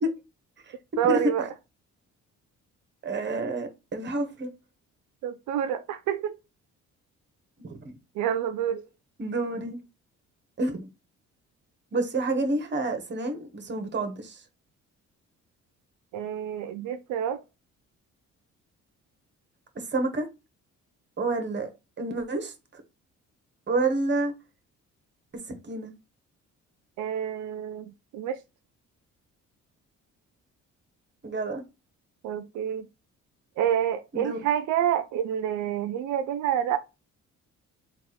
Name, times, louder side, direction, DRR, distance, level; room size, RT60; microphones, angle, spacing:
voice 1, 1.0-1.5 5.2-6.4 8.2-8.8 16.1-17.4 27.0-28.4 32.2-32.9 33.6-36.8, right 9 dB, 80° right, 0.5 m, -28 dB
voice 2, 3.0-4.5 7.6-7.9 9.2-9.8 10.6-10.9 11.9-14.4 19.7-20.3 21.2-21.7 22.0-22.8 23.7-24.3 25.6-25.9 31.2-31.6 34.1-34.4, right 2 dB, 35° right, 1.2 m, -29 dB
3.5 x 2.4 x 4.1 m
cardioid pair, 90°, 30 cm